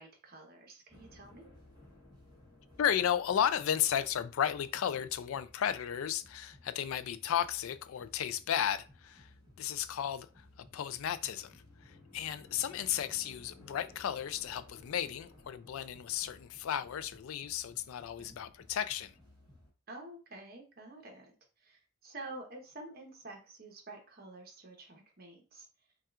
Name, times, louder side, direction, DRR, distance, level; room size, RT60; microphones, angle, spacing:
voice 1, 0.0-1.4 18.2-18.3 19.9-25.7, right 2 dB, 45° right, 1.0 m, -49 dB
sound 1, 0.9-19.7, left 1 dB, 20° right, 1.3 m, -58 dB
voice 2, 2.8-19.2, left 9 dB, 75° left, 0.3 m, -34 dB
5.5 x 2.4 x 2.4 m
head